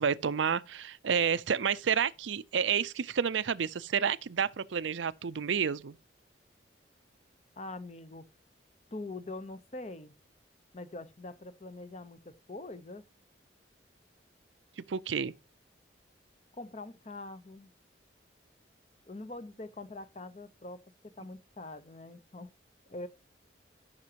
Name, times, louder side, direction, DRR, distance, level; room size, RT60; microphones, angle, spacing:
voice 1, 0.0-6.0 14.9-15.3, right 7 dB, 85° right, 0.5 m, -30 dB
voice 2, 7.6-8.2 8.9-10.1 10.7-13.0 16.6-17.7 19.1-22.5 22.9-23.1, left 2 dB, 35° left, 0.8 m, -43 dB
14.0 x 6.0 x 2.9 m
head